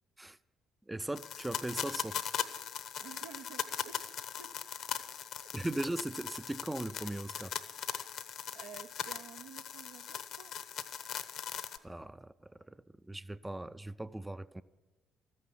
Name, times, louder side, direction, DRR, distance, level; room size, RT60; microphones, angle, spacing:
voice 1, 0.9-2.3 5.5-7.5 11.8-12.7 13.1-14.6, right 1 dB, 10° right, 0.5 m, -39 dB
sound 1, 1.2-11.8, left 8 dB, 65° left, 0.9 m, -40 dB
voice 2, 3.0-4.5 4.9-5.1 5.4-5.5 8.5-10.5, right 7 dB, 80° right, 0.8 m, -52 dB
13.5 x 9.5 x 9.6 m
hypercardioid pair, 50°, 0 cm